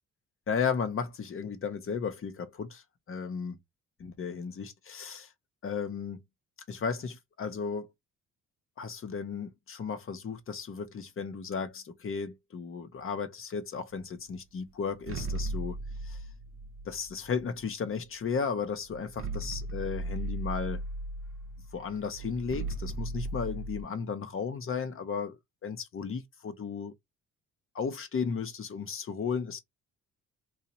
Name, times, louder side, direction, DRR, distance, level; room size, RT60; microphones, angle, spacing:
voice 1, 0.5-3.6 4.0-5.3 5.6-6.2 6.7-7.9 8.8-15.8 16.0-16.2 16.8-20.8 21.7-26.9 27.7-29.6, left 6 dB, 45° left, 0.9 m, -34 dB
sound 1, 14.9-17.7 18.4-18.5 18.9-23.8, right 2 dB, 45° right, 0.8 m, -37 dB
2.9 x 2.4 x 4.1 m
cardioid pair, 90°, 30 cm